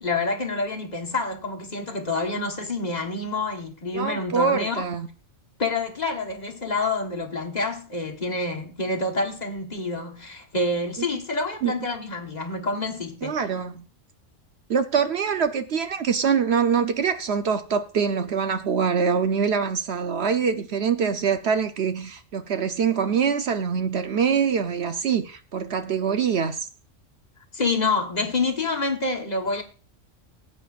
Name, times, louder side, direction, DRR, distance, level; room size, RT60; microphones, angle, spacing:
voice 1, 0.0-4.8 5.6-13.5 27.5-29.6, left 3 dB, 35° left, 1.3 m, -27 dB
voice 2, 3.9-5.1 11.6-11.7 13.2-13.8 14.7-26.7, right 6 dB, 60° right, 0.9 m, -24 dB
19.5 x 8.6 x 2.4 m
omnidirectional pair, 1.3 m